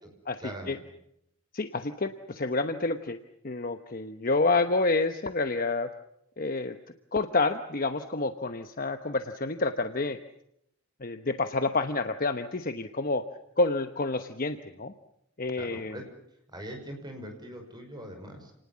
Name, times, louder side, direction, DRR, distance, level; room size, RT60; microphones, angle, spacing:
voice 1, 0.4-0.8 15.6-16.1 16.5-18.5, equal, 20° right, 4 dB, 5.8 m, -42 dB
voice 2, 1.5-3.2 3.4-5.9 6.4-6.8 7.1-10.2 11.0-13.3 13.6-14.9 15.4-16.0, left 3 dB, 45° left, 8 dB, 1.0 m, -28 dB
29.0 x 19.5 x 7.5 m, 0.77 s
head